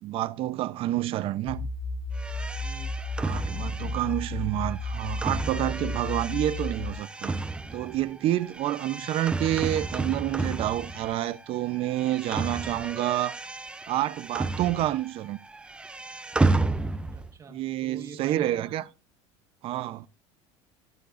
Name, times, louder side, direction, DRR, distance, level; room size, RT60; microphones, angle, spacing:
voice 1, 0.0-1.7 3.2-7.4 7.7-13.4 13.9-15.4 17.5-18.8 19.6-20.1, right 14 dB, 45° right, 0.8 m, -28 dB
sound 1, 1.5-6.9, left 2 dB, 60° left, 1.9 m, -33 dB
sound 2, 2.2-11.5 11.7-15.2 15.4-17.3, right 3 dB, 10° right, 0.6 m, -32 dB
voice 2, 2.6-2.9 17.1-18.7, right 4 dB, 25° right, 1.6 m, -45 dB
13.5 x 13.0 x 2.6 m
cardioid pair, 150°, 13 cm